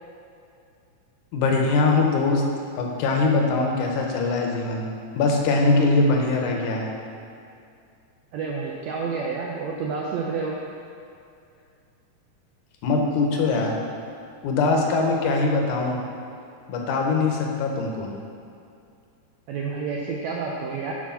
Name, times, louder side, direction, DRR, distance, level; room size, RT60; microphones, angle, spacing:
voice 1, 1.3-2.5 2.8-6.9 12.8-13.8 14.4-16.0 16.7-18.1, left 3 dB, 75° left, 1 dB, 2.4 m, -22 dB
voice 2, 8.3-10.6 19.5-20.9, right 5 dB, 75° right, -2 dB, 1.8 m, -29 dB
9.9 x 5.0 x 5.7 m, 2.4 s
omnidirectional pair, 3.6 m